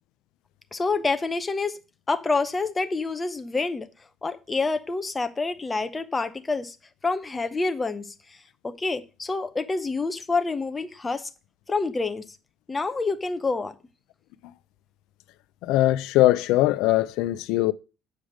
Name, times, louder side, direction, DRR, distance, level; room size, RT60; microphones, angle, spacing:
voice 1, 0.7-1.7 2.1-3.9 4.2-6.7 7.0-8.1 8.8-11.3 11.7-12.2 12.7-13.7, left 3 dB, 15° left, 0.8 m, -27 dB
voice 2, 15.6-17.7, left 16 dB, 90° left, 0.4 m, -21 dB
7.4 x 5.0 x 6.3 m
cardioid pair, 145°, 0 cm